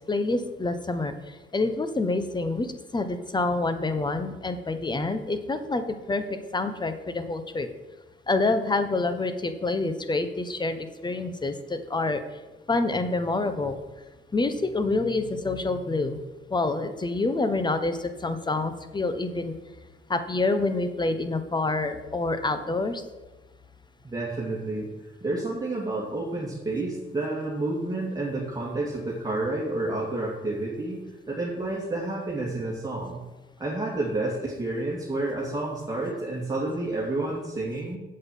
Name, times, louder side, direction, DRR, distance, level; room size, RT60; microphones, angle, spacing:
voice 1, 0.1-6.2 6.5-7.7 8.3-12.2 12.7-13.8 14.3-16.2 16.5-19.6 20.1-23.0, left 3 dB, 20° left, 10 dB, 1.1 m, -27 dB
voice 2, 24.0-24.9 25.2-33.2 33.6-38.0, right 2 dB, 20° right, -5 dB, 2.5 m, -30 dB
8.0 x 7.8 x 7.3 m, 1.1 s
cardioid pair, 90°, 20 cm